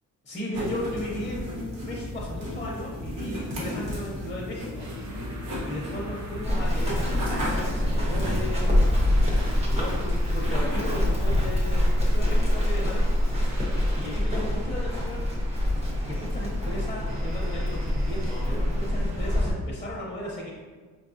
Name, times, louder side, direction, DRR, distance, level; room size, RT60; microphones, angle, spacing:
voice 1, 0.2-4.9 5.7-8.9 9.6-13.0 13.9-15.2 16.1-20.5, left 1 dB, 20° left, -4 dB, 0.5 m, -36 dB
sound 1, 0.5-11.9, left 1 dB, 75° right, 1.1 m, -34 dB
sound 2, 4.8-19.1, equal, 55° right, 0.9 m, -42 dB
Run, 6.4-19.5, left 1 dB, 20° right, 0.6 m, -25 dB
4.3 x 2.2 x 2.5 m, 1.5 s
cardioid pair, 125°, 33 cm